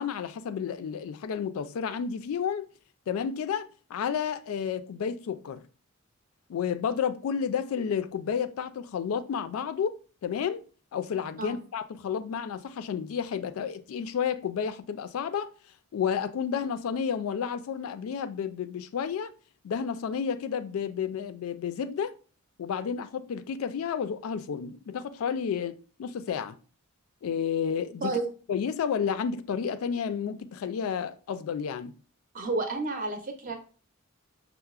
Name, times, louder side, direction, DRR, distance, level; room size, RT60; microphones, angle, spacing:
voice 1, 0.0-2.7 3.1-5.6 6.5-10.6 10.9-15.5 15.9-19.3 19.6-22.1 22.6-26.6 27.2-28.2 28.5-32.0, left 7 dB, 80° left, 0.3 m, -31 dB
voice 2, 32.3-33.5, right 3 dB, 40° right, 0.6 m, -30 dB
5.5 x 2.0 x 2.3 m
head